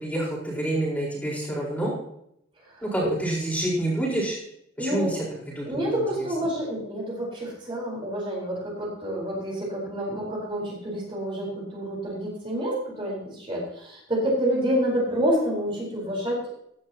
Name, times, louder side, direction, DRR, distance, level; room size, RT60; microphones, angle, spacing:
voice 1, 0.0-1.9 2.8-4.4 4.8-5.2 5.6-6.3, right 1 dB, 5° left, -5 dB, 4.4 m, -28 dB
voice 2, 2.7-3.1 4.8-5.1 5.6-16.4, equal, 25° right, -3 dB, 4.3 m, -28 dB
15.5 x 11.5 x 2.9 m, 0.75 s
head